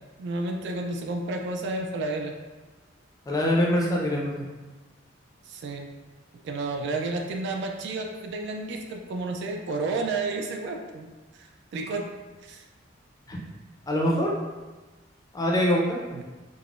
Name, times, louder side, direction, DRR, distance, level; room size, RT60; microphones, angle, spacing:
voice 1, 0.2-2.3 5.5-5.9 6.4-11.1 11.3-12.1 12.4-12.6 16.1-16.2, right 3 dB, 60° right, 3 dB, 0.3 m, -31 dB
voice 2, 3.3-4.4 13.3-13.4 13.9-14.3 15.3-16.0, equal, 20° left, -3 dB, 0.4 m, -24 dB
3.5 x 2.0 x 2.4 m, 1.2 s
head